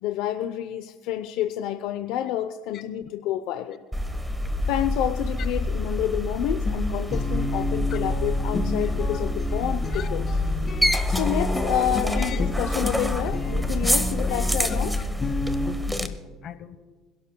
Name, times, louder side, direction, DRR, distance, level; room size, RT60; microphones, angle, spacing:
voice 1, 0.0-3.8 4.7-10.3 11.1-15.0, left 11 dB, 75° left, 8 dB, 0.7 m, -29 dB
sound 1, 3.9-16.1, left 1 dB, 5° right, 1.2 m, -26 dB
Guitar, 6.7-15.7, left 2 dB, 30° left, 3.7 m, -32 dB
voice 2, 15.9-16.8, left 10 dB, 55° left, 12 dB, 1.1 m, -39 dB
27.0 x 12.0 x 2.3 m, 1.3 s
supercardioid pair, 100°, 0 cm